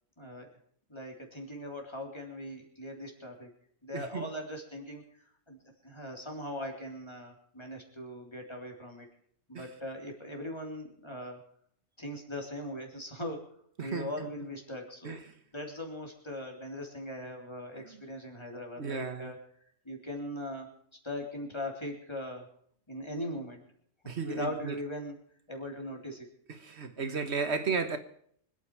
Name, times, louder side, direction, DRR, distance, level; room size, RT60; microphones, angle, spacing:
voice 1, 0.2-0.5 0.9-3.5 3.8-5.0 5.5-9.1 9.5-11.4 12.0-15.2 15.5-19.4 19.9-20.7 21.0-22.5 22.9-23.7 24.0-25.2 25.5-26.3, left 1 dB, 25° left, 3.6 m, -40 dB
voice 2, 3.9-4.3 9.5-9.7 13.8-14.3 15.0-15.3 17.8-17.9 18.8-19.3 24.0-24.8 26.5-28.0, right 5 dB, 70° right, 1.6 m, -34 dB
25.5 x 9.5 x 4.8 m
omnidirectional pair, 1.2 m